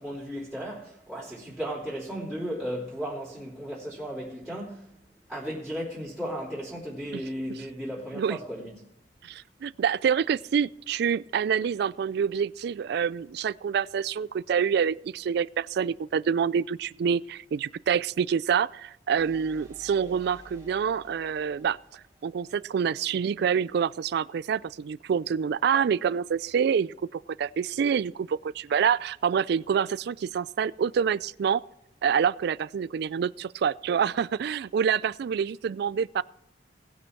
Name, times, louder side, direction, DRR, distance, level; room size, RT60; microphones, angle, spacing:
voice 1, 0.0-4.9 5.3-8.7, equal, ahead, 3.0 m, -35 dB
voice 2, 9.2-31.6 32.0-36.2, right 7 dB, 60° right, 0.3 m, -27 dB
sound 1, 19.2-22.9, equal, 20° right, 1.6 m, -54 dB
18.5 x 6.3 x 4.6 m
head